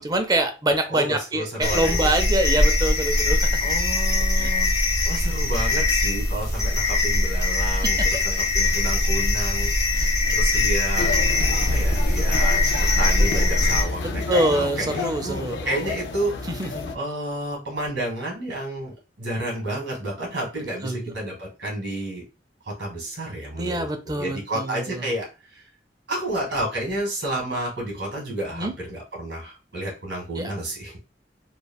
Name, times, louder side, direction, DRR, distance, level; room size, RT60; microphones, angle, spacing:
voice 1, 0.0-3.5 4.4-4.5 7.7-7.9 8.6-8.8 9.1-9.2 9.9-10.1 14.0-15.7 16.5-16.9 20.8-21.1 23.6-25.0 28.5-28.7 30.4-30.5, right 1 dB, 20° right, 7 dB, 0.5 m, -25 dB
voice 2, 0.9-2.2 3.6-4.7 5.0-11.1 11.7-12.6 13.0-16.6 16.9-22.2 22.6-25.3 25.5-25.6 26.1-30.9, right 1 dB, 85° right, -2 dB, 1.6 m, -31 dB
sound 1, 1.6-13.8, left 2 dB, 20° left, 0.7 m, -21 dB
sound 2, 10.9-17.0, left 3 dB, 70° left, 0.4 m, -30 dB
3.3 x 2.2 x 2.2 m, 0.30 s
head